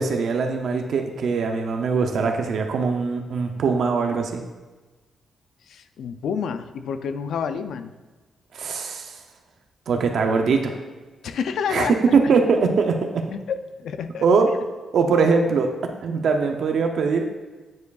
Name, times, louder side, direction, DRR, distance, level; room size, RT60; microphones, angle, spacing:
voice 1, 0.0-4.4 8.5-9.1 9.9-10.7 11.7-13.0 14.2-14.5 14.9-17.3, right 5 dB, 60° right, 4 dB, 0.5 m, -21 dB
voice 2, 5.7-7.9 11.2-12.0 13.3-14.3, left 6 dB, 75° left, 10 dB, 0.4 m, -29 dB
9.3 x 4.6 x 2.4 m, 1.2 s
wide cardioid pair, 165°, 0 cm